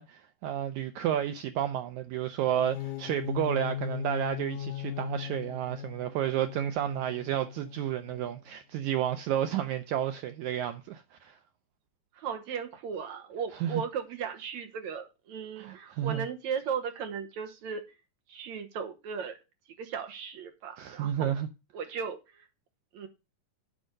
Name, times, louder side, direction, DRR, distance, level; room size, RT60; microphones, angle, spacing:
voice 1, 0.0-11.4 13.6-13.8 15.6-16.2 20.8-21.5, right 11 dB, 85° right, 1.7 m, -31 dB
sound 1, 2.5-8.5, left 11 dB, 80° left, 2.4 m, -39 dB
voice 2, 12.2-17.8 18.3-19.4 19.8-21.3 21.7-22.4 22.9-23.1, right 6 dB, 65° right, 2.1 m, -36 dB
8.2 x 5.1 x 6.4 m
omnidirectional pair, 4.0 m